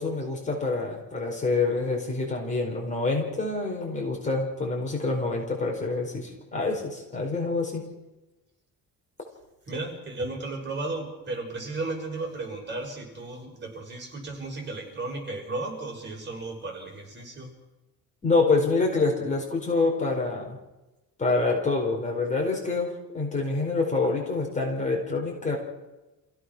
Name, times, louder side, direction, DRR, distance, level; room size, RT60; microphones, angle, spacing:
voice 1, 0.0-7.8 18.2-20.6 21.2-25.6, left 3 dB, 20° left, 0 dB, 4.5 m, -26 dB
voice 2, 9.7-17.5, right 2 dB, 30° right, 1 dB, 6.4 m, -34 dB
28.0 x 16.5 x 6.2 m, 1.0 s
cardioid pair, 160°, 35 cm